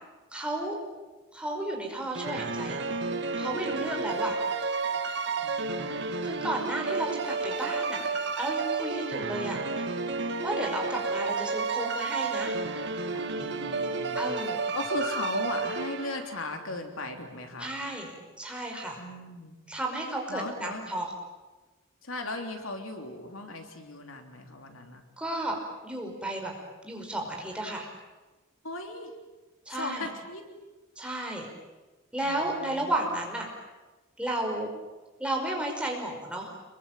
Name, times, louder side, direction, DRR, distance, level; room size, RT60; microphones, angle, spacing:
voice 1, 0.3-0.8 1.3-2.8 3.4-4.4 6.2-8.1 8.4-9.8 10.4-12.6 14.2-14.6 17.6-18.1 18.4-19.0 19.7-21.1 25.2-25.6 25.8-26.5 26.8-27.9 29.7-30.1 31.0-31.5 32.1-33.5 34.2-34.7 35.2-36.5, right 1 dB, 5° right, 1 dB, 5.3 m, -33 dB
sound 1, 2.1-16.5, right 4 dB, 55° right, 1.8 m, -31 dB
voice 2, 3.4-4.0 5.4-6.4 13.1-17.7 19.0-19.6 20.3-21.0 22.0-25.0 28.6-29.1 29.7-30.5 32.2-32.9, left 2 dB, 70° left, 5 dB, 3.3 m, -38 dB
27.0 x 22.5 x 9.1 m, 1.2 s
head